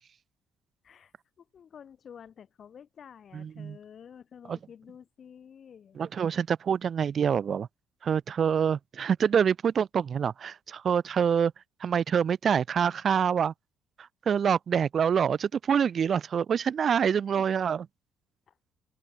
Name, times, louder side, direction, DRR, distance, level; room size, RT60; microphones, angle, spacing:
voice 1, 0.8-6.0 17.3-17.5 18.5-18.7, left 8 dB, 45° left, 2.1 m, -50 dB
voice 2, 3.3-3.8 4.5-4.6 6.0-7.7 8.0-11.5 11.8-13.5 14.0-17.8, right 7 dB, 45° right, 0.4 m, -26 dB
cardioid pair, 110°, 0 cm